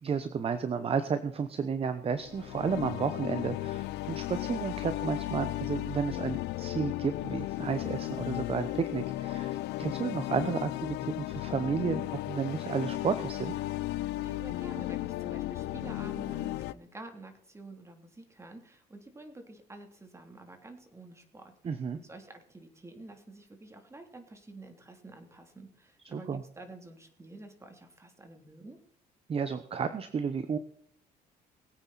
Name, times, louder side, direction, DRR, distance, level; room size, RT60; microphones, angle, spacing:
voice 1, 0.0-13.5 21.6-22.0 26.0-26.4 29.3-30.6, right 6 dB, 35° right, 11 dB, 1.0 m, -32 dB
sound 1, 2.2-16.7, left 16 dB, 85° left, 0.7 m, -35 dB
voice 2, 14.2-28.8, right 2 dB, 15° right, 5 dB, 3.1 m, -49 dB
21.5 x 9.0 x 4.2 m, 0.63 s
cardioid pair, 110°, 17 cm